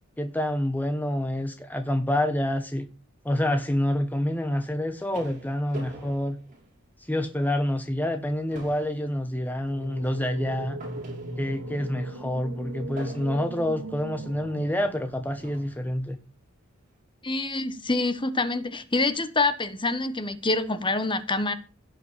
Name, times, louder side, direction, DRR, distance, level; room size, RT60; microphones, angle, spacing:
voice 1, 0.2-2.9 3.2-6.4 7.1-10.8 11.4-16.2, left 1 dB, 10° left, 1.1 m, -27 dB
sound 1, 4.6-7.3 7.7-7.9 8.2-11.7 13.0-13.7 14.6-14.7 15.4-15.9, right 2 dB, 40° right, 5.7 m, -45 dB
sound 2, 9.6-15.8, right 1 dB, 85° right, 3.6 m, -38 dB
voice 2, 17.2-21.5, left 2 dB, 25° left, 1.3 m, -26 dB
16.5 x 5.8 x 7.5 m
head